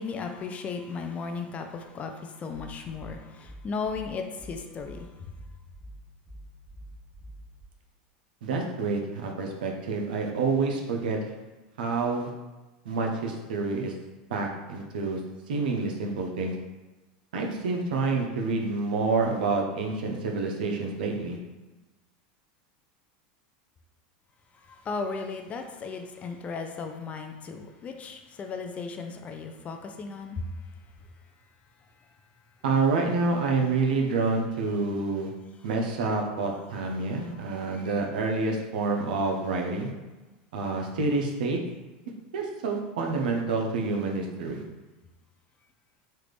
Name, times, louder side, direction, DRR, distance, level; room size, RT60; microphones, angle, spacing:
voice 1, 0.0-5.1 24.7-30.5 37.2-37.3 37.7-37.9, left 4 dB, 30° left, 5 dB, 0.4 m, -36 dB
sound 1, 2.5-7.7, right 1 dB, ahead, 0.8 m, -46 dB
voice 2, 8.4-11.2 11.8-12.3 12.8-13.9 14.3-15.2 15.5-16.5 17.3-21.4 32.6-35.3 35.6-39.9 40.5-41.6 42.3-44.6, right 3 dB, 90° right, 1 dB, 0.6 m, -28 dB
3.3 x 2.5 x 3.2 m, 1.1 s
supercardioid pair, 120°, 5 cm